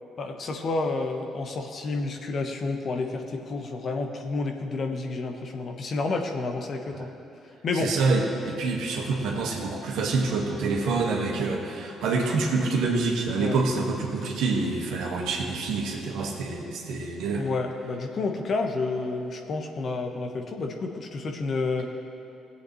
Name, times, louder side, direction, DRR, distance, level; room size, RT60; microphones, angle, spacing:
voice 1, 0.2-7.1 7.6-7.9 13.4-13.6 17.3-21.9, left 3 dB, 55° left, 3 dB, 1.2 m, -30 dB
voice 2, 7.7-17.5, right 3 dB, 70° right, 0 dB, 1.7 m, -27 dB
18.0 x 8.4 x 3.2 m, 3.0 s
hypercardioid pair, 45°, 0 cm